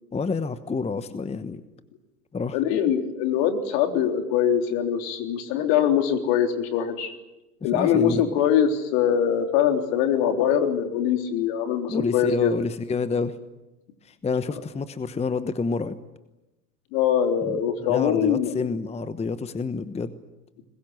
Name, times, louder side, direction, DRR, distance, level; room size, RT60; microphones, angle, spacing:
voice 1, 0.1-1.6 2.3-2.6 7.6-8.4 11.9-13.4 14.0-15.9 17.4-17.6 17.9-20.1, left 4 dB, 15° left, 13 dB, 1.0 m, -28 dB
voice 2, 2.5-7.1 7.6-12.5 16.9-18.5, left 9 dB, 55° left, 6 dB, 3.6 m, -23 dB
23.0 x 21.0 x 9.5 m, 1.0 s
hypercardioid pair, 90°, 48 cm